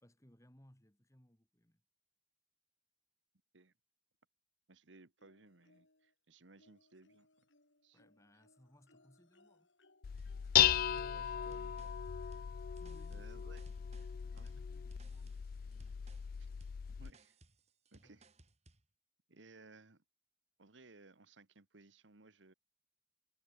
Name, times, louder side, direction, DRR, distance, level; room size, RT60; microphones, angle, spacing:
voice 1, 0.0-1.8 7.9-9.7 12.7-16.1 18.0-18.2, equal, 15° left, 2.4 m, -66 dB
voice 2, 4.7-7.5 7.8-8.0 10.7-12.0 13.1-13.6 14.3-14.6 16.4-16.5 17.0-17.4 17.9-18.3 19.3-20.0 20.6-22.5, right 3 dB, 85° right, 1.5 m, -61 dB
sound 1, 5.2-6.1 6.6-12.3 13.5-13.6 13.9-14.0, left 2 dB, 85° left, 7.4 m, -71 dB
Dishes pots and pans, 10.0-17.1, left 10 dB, 50° left, 0.3 m, -36 dB
sound 2, 10.2-18.9, right 2 dB, 35° right, 3.7 m, -65 dB
head